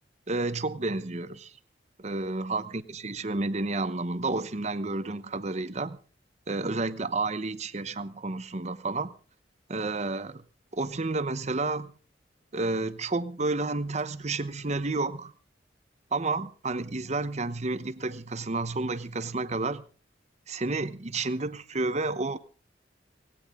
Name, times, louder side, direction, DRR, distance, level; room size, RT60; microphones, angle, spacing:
voice 1, 0.3-1.5 2.0-6.0 6.5-9.1 9.7-10.4 10.7-11.9 12.5-15.3 16.1-19.8 20.5-22.4, right 3 dB, 40° right, 1.0 m, -30 dB
18.0 x 17.5 x 3.7 m
head